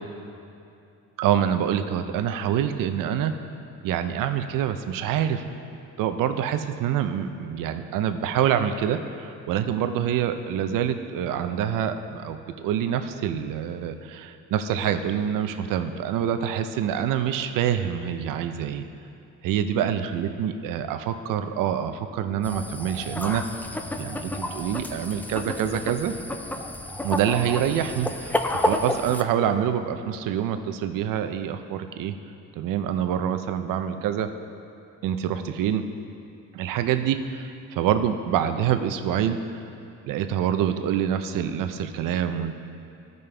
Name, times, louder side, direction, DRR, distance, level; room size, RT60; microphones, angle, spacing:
voice 1, 1.2-3.3 3.8-5.4 6.0-18.8 19.4-23.4 24.0-26.1 27.0-32.1 32.5-34.3 35.0-35.8 36.5-39.6 40.1-42.6, right 9 dB, 85° right, 8 dB, 0.6 m, -26 dB
sound 1, 22.4-29.2, left 1 dB, 5° left, 0.3 m, -30 dB
15.0 x 5.3 x 3.3 m, 2.7 s
cardioid pair, 135°, 32 cm